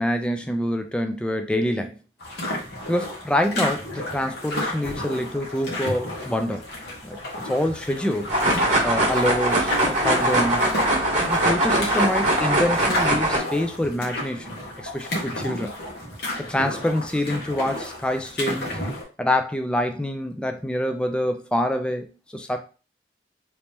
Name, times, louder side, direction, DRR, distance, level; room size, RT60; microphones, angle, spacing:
voice 1, 0.0-2.0 2.9-6.6 7.0-7.2 7.4-8.3 8.8-10.7 11.2-14.5 14.8-15.7 16.4-18.8 19.2-22.6, left 1 dB, 5° left, 5 dB, 0.3 m, -26 dB
sound 1, 2.2-19.0, left 1 dB, 65° left, 1.2 m, -32 dB
sound 2, 8.3-13.4, right 1 dB, 45° right, 1.1 m, -21 dB
3.0 x 2.8 x 3.5 m, 0.34 s
head